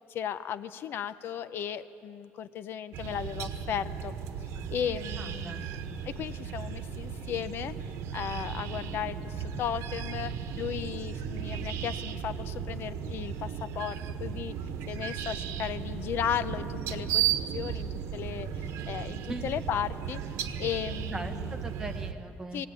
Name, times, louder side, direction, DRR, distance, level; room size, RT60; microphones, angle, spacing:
voice 1, 0.1-4.1 4.7-7.8 8.1-14.5 14.9-17.2 17.5-20.2 20.6-21.5 22.5-22.7, left 9 dB, 50° left, 13 dB, 0.6 m, -35 dB
sound 1, 2.9-22.1, right 8 dB, 70° right, 1.2 m, -35 dB
voice 2, 5.2-5.7 19.3-19.5 21.1-22.7, right 2 dB, 10° right, 4 dB, 1.1 m, -40 dB
19.0 x 19.0 x 9.0 m, 2.6 s
cardioid pair, 170°, 5 cm